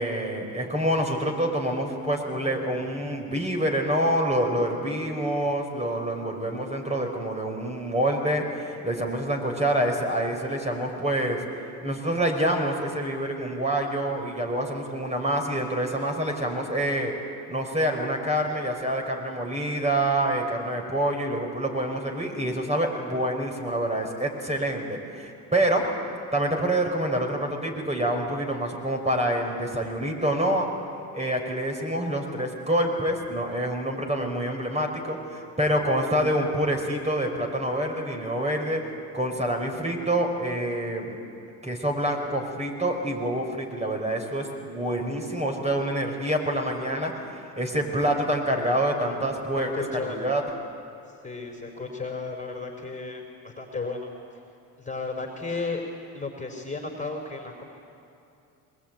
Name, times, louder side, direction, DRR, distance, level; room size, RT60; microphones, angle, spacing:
voice 1, 0.0-11.4 11.8-17.1 17.5-25.9 26.3-30.7 31.1-38.8 39.1-41.2 41.6-47.1 47.6-50.4, right 1 dB, 15° right, 1 dB, 5.2 m, -27 dB
voice 2, 49.5-50.2 51.2-54.1 54.8-55.8 56.1-57.8, left 3 dB, 15° left, 2 dB, 4.0 m, -34 dB
21.5 x 21.0 x 9.2 m, 2.7 s
supercardioid pair, 70°, 42 cm